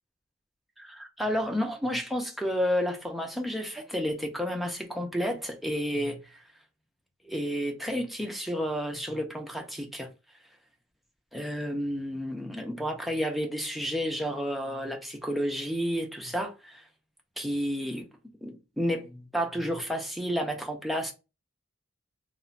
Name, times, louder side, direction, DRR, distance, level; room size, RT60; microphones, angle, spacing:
voice 1, 0.8-6.4 7.2-10.1 11.3-16.9 17.4-18.0 18.4-21.1, equal, ahead, 0.4 m, -31 dB
2.9 x 2.1 x 2.5 m
head